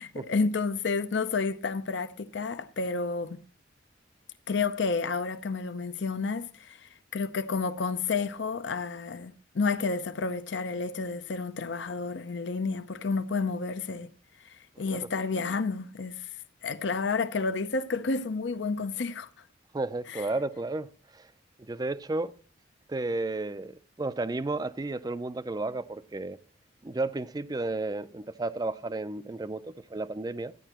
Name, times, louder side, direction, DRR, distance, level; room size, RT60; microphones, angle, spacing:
voice 1, 0.0-3.4 4.5-14.1 14.4-16.3 16.6-19.3 20.1-20.2, left 4 dB, 65° left, 0.5 m, -30 dB
voice 2, 19.7-20.9 21.1-21.3 21.6-22.3 22.9-26.4 26.8-30.5, right 2 dB, 20° right, 0.4 m, -32 dB
13.0 x 9.9 x 2.9 m
head